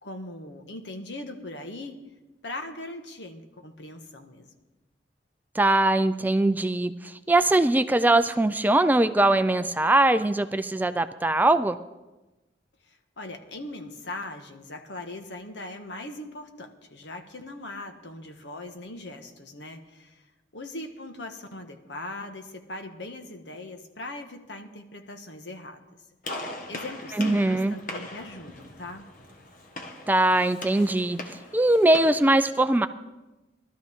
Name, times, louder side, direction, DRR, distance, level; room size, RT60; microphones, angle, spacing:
voice 1, 0.0-2.0 2.4-4.5 12.8-20.2 20.5-25.8 26.7-29.1, left 2 dB, 75° left, 5 dB, 1.4 m, -40 dB
voice 2, 5.6-11.8 27.1-27.8 30.1-32.9, right 2 dB, 10° right, 11 dB, 0.3 m, -21 dB
Gunshot gunfire, 26.2-32.3, left 2 dB, 50° left, 1.5 m, -40 dB
19.0 x 13.0 x 3.6 m, 1.1 s
head